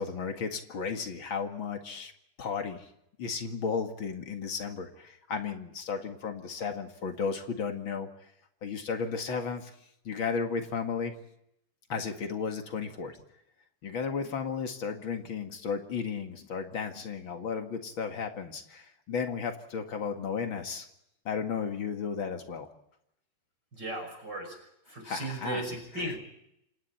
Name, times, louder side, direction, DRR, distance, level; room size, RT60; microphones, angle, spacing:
voice 1, 0.0-2.1 2.4-2.9 3.2-8.1 8.6-9.7 10.0-11.1 11.9-13.2 13.8-20.8 21.2-22.7 25.0-25.6 25.9-26.1, left 5 dB, 45° left, 5 dB, 1.7 m, -34 dB
voice 2, 23.7-24.6 24.9-26.2, right 1 dB, 25° right, 3 dB, 6.2 m, -36 dB
28.0 x 27.5 x 4.4 m, 0.78 s
omnidirectional pair, 4.8 m